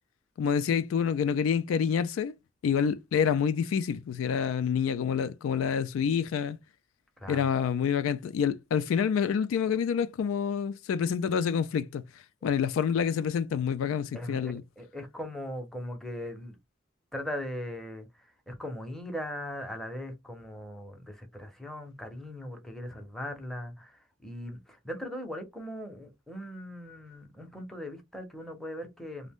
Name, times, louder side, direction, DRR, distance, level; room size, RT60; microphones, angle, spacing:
voice 1, 0.4-2.3 2.6-6.6 7.3-12.0 12.4-14.6, left 7 dB, 80° left, 0.3 m, -27 dB
voice 2, 14.1-16.6 17.1-18.1 18.5-29.3, equal, ahead, 0.6 m, -39 dB
2.5 x 2.1 x 3.4 m
head